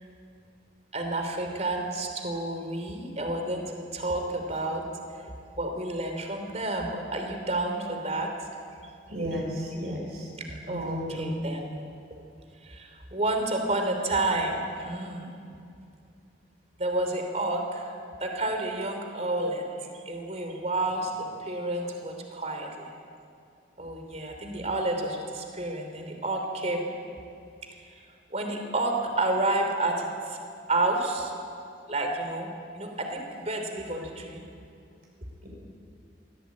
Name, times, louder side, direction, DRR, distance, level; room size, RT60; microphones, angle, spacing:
voice 1, 0.9-4.8 5.1-5.2 5.6-8.3 10.4-11.7 12.6-15.3 16.8-17.9 18.2-19.6 20.0-22.9 23.8-26.9 27.7-28.0 28.3-30.4 30.7-31.3 31.9-32.5 32.7-34.4, right 2 dB, 40° right, 4 dB, 3.2 m, -30 dB
voice 2, 9.1-9.5 9.8-10.0 10.7-11.3 35.4-35.5, equal, 60° right, -2 dB, 6.0 m, -33 dB
23.0 x 17.0 x 8.5 m, 2.4 s
head